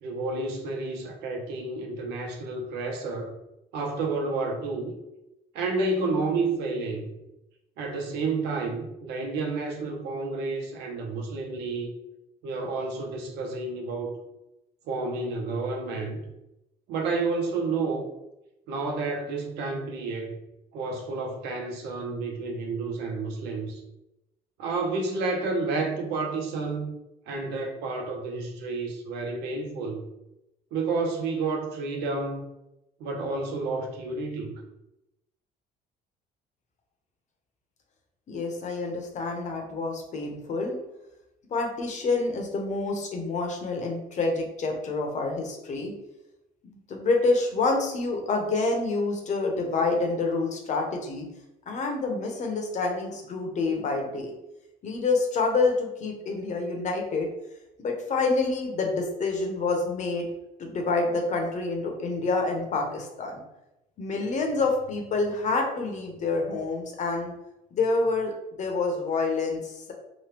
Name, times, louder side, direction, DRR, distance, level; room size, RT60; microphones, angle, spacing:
voice 1, 0.0-3.4 3.7-5.0 5.5-7.1 7.8-11.9 12.4-14.1 14.9-16.2 16.9-18.1 18.7-20.4 20.7-23.8 24.6-26.9 27.3-30.1 30.7-32.5 33.0-34.6, right 3 dB, 85° right, 2 dB, 0.6 m, -30 dB
voice 2, 38.3-40.8 41.5-45.9 46.7-51.3 51.7-54.3 54.8-57.3 57.8-60.3 60.6-63.4 64.0-67.3 67.7-69.9, left 3 dB, 45° left, 2 dB, 0.7 m, -27 dB
2.9 x 2.2 x 3.3 m, 0.91 s
cardioid pair, 110°, 17 cm